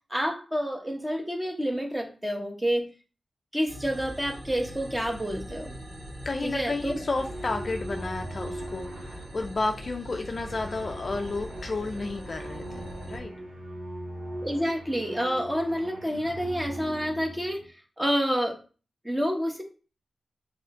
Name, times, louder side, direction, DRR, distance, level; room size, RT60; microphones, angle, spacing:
voice 1, 0.1-2.9 3.5-5.7 6.4-7.0 14.4-18.6 19.0-19.6, equal, 10° right, 2 dB, 1.3 m, -28 dB
sound 1, 3.7-13.2, equal, 40° right, 2.0 m, -42 dB
voice 2, 6.2-13.3, left 3 dB, 40° left, 3 dB, 0.5 m, -32 dB
sound 2, 7.1-17.7, right 1 dB, 90° right, 2.9 m, -40 dB
8.2 x 4.2 x 3.7 m, 0.36 s
wide cardioid pair, 150°, 0 cm